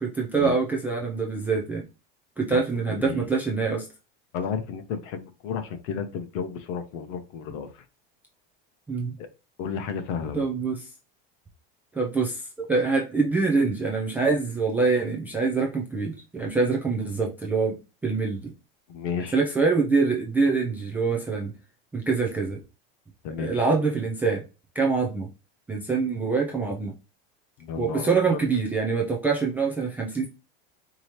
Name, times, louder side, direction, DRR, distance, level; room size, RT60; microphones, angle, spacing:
voice 1, 0.0-1.9 2.4-3.9 8.9-9.1 10.3-10.9 11.9-17.7 18.0-18.5 19.3-21.5 21.9-22.6 23.4-24.4 24.8-25.3 25.7-26.9 27.8-30.3, right 4 dB, 5° right, 0.3 m, -25 dB
voice 2, 2.9-3.3 4.3-7.7 9.2-9.3 9.6-10.4 18.9-19.4 23.2-23.5 27.6-28.4, left 6 dB, 50° left, 0.8 m, -32 dB
4.8 x 2.8 x 2.9 m
supercardioid pair, 165°, 29 cm